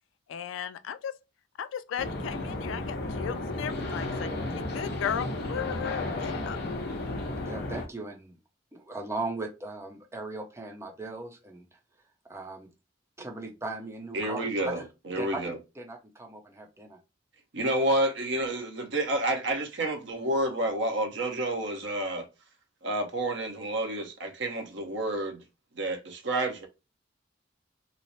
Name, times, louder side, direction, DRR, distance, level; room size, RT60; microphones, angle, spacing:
voice 1, 0.3-1.1 1.6-6.6, left 8 dB, 75° left, 0.3 m, -36 dB
sound 1, 2.0-7.9, left 2 dB, 60° left, 0.8 m, -33 dB
voice 2, 7.5-8.4 8.7-11.6 12.3-12.7 13.2-14.9 15.2-17.0, right 2 dB, 15° right, 0.7 m, -38 dB
voice 3, 14.1-15.6 17.5-22.3 22.8-25.4 25.8-26.7, right 1 dB, 70° right, 0.9 m, -29 dB
3.1 x 2.0 x 4.1 m
head